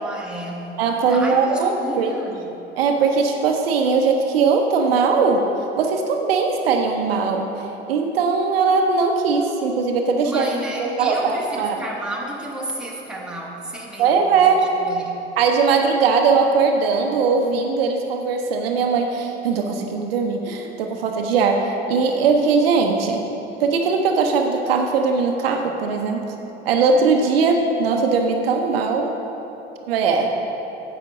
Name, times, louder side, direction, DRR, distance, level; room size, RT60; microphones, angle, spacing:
voice 1, 0.0-0.7 1.1-2.5 10.2-15.3 29.8-29.9, right 1 dB, 5° right, -3 dB, 1.5 m, -32 dB
voice 2, 0.8-2.1 2.8-5.4 5.8-7.5 7.9-10.5 10.8-11.8 14.0-14.7 15.4-23.3 23.6-26.2 26.6-29.1 29.9-30.3, right 5 dB, 65° right, 3 dB, 0.9 m, -20 dB
10.5 x 8.1 x 3.7 m, 3.0 s
figure-of-eight pair, 75°, 31 cm